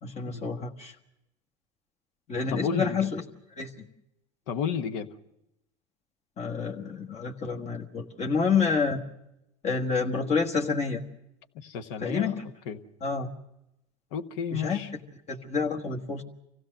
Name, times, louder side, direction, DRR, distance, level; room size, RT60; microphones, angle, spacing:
voice 1, 0.0-0.9 2.3-3.2 3.6-3.9 6.4-9.0 9.6-11.0 12.0-12.4 13.0-13.3 14.5-14.8 15.3-16.2, left 5 dB, 45° left, 0 dB, 1.5 m, -28 dB
voice 2, 2.5-3.1 4.5-5.1 11.5-12.4 12.7-12.8 14.1-14.9, left 7 dB, 75° left, 10 dB, 1.1 m, -31 dB
25.5 x 16.0 x 6.5 m, 0.86 s
supercardioid pair, 95°, 16 cm